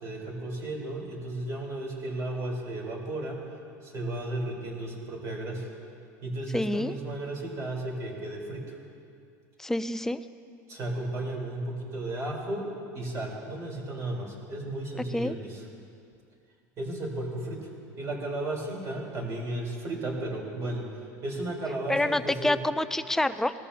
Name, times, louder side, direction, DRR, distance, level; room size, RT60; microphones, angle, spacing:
voice 1, 0.0-3.4 3.8-5.7 6.2-8.8 10.7-15.6 16.8-17.6 18.0-20.8 21.2-22.6, right 1 dB, 40° right, -2 dB, 3.8 m, -34 dB
voice 2, 6.5-6.9 9.6-10.2 15.1-15.4 21.9-23.5, left 1 dB, 5° left, 12 dB, 0.4 m, -27 dB
20.5 x 13.5 x 2.8 m, 2.4 s
supercardioid pair, 125°, 8 cm